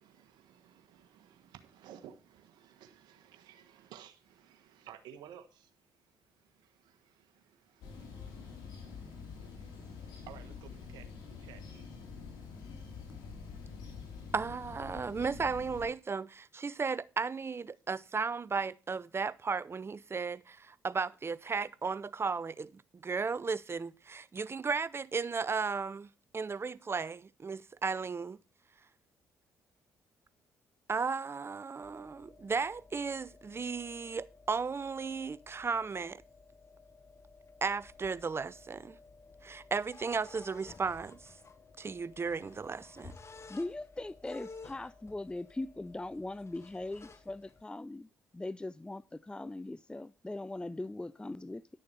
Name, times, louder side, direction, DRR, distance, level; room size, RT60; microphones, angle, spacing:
voice 1, 0.0-11.9, right 10 dB, 75° right, 1.3 m, -56 dB
sound 1, 7.8-15.9, left 5 dB, 75° left, 3.4 m, -46 dB
voice 2, 14.3-28.4 30.9-36.2 37.6-39.0 39.4-41.3 41.8-43.1, right 5 dB, 35° right, 0.7 m, -35 dB
sound 2, 31.8-47.6, left 4 dB, 40° left, 1.3 m, -55 dB
voice 3, 43.5-48.1 48.3-51.7, left 2 dB, 10° left, 0.5 m, -40 dB
11.0 x 6.6 x 5.6 m
hypercardioid pair, 50°, 7 cm